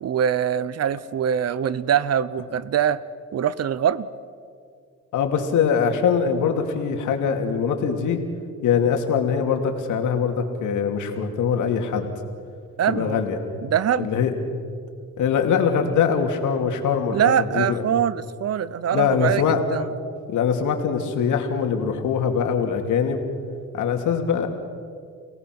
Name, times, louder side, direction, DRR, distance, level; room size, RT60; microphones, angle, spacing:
voice 1, 0.0-3.0 3.3-4.1 12.8-13.2 13.6-14.1 17.1-19.8, right 9 dB, 55° right, 17 dB, 0.9 m, -23 dB
voice 2, 5.1-8.2 8.6-12.1 12.9-13.4 14.0-14.3 15.2-17.8 18.9-19.6 20.3-23.2 23.7-24.5, left 7 dB, 80° left, 4 dB, 2.7 m, -22 dB
30.0 x 18.0 x 6.2 m, 2.2 s
cardioid pair, 90°, 30 cm